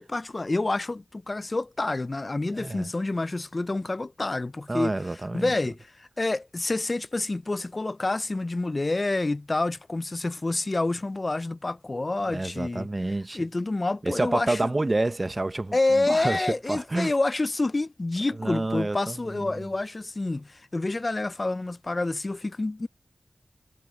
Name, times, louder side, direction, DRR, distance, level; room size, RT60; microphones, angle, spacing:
voice 1, 0.0-4.9 5.3-12.9 13.3-14.7 15.7-22.9, left 2 dB, 40° left, 0.4 m, -28 dB
voice 2, 2.5-2.9 4.7-5.5 12.2-13.4 14.0-17.1 18.4-19.7, right 2 dB, 35° right, 0.8 m, -29 dB
wide cardioid pair, 65°, 0 cm